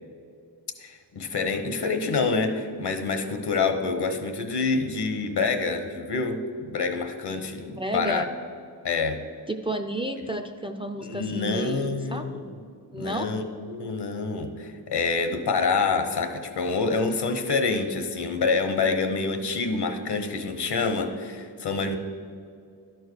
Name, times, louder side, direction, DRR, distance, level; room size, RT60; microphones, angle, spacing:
voice 1, 0.8-8.2 8.8-9.2 11.0-12.6 12.9-21.9, left 4 dB, 70° left, 7 dB, 1.0 m, -27 dB
voice 2, 7.7-8.3 9.5-12.3 12.9-13.3, right 1 dB, 15° right, 7 dB, 0.4 m, -31 dB
11.5 x 4.7 x 6.4 m, 2.3 s
wide cardioid pair, 95°, 42 cm